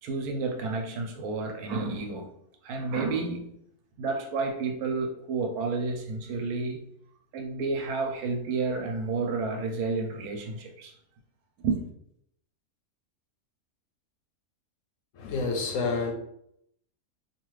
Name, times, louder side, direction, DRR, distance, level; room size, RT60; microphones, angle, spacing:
voice 1, 0.0-2.3 2.6-3.5 4.0-6.8 7.3-10.9 11.6-11.8, right 4 dB, 80° right, 1.1 m, -30 dB
voice 2, 15.1-16.1, left 4 dB, 65° left, 0.9 m, -28 dB
2.7 x 2.4 x 3.0 m
omnidirectional pair, 1.6 m